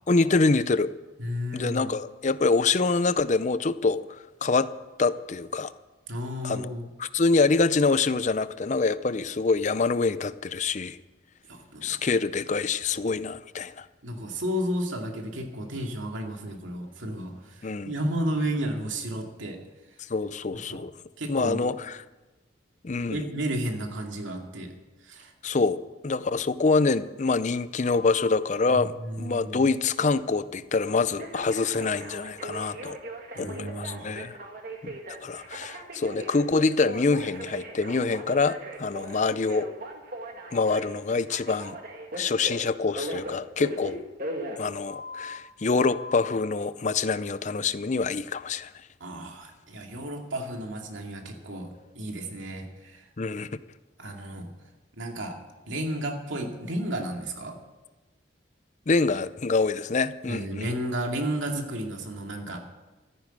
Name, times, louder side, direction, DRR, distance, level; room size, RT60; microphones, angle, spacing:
voice 1, 0.1-0.9 1.5-4.7 5.0-5.7 6.4-6.7 7.0-11.0 11.8-13.9 17.6-17.9 20.0-20.9 21.3-22.0 22.8-23.2 25.4-25.8 26.0-28.9 29.2-33.0 33.4-34.4 34.8-39.7 40.5-41.8 42.1-44.0 44.6-48.7 53.2-53.5 58.9-60.7, left 4 dB, 40° left, 14 dB, 0.5 m, -25 dB
voice 2, 1.2-1.9 6.1-6.9 11.5-11.9 14.0-19.6 20.7-20.8 21.2-21.7 23.0-24.7 25.0-25.3 28.7-29.6 33.3-34.1 49.0-53.1 54.0-54.5 55.0-55.4 55.7-57.6 60.3-62.6, equal, 90° right, 2 dB, 2.4 m, -32 dB
Telephone, 27.8-28.4 31.2-45.4 45.8-46.4, right 1 dB, 50° right, 2.0 m, -39 dB
14.0 x 10.0 x 8.0 m, 1.1 s
head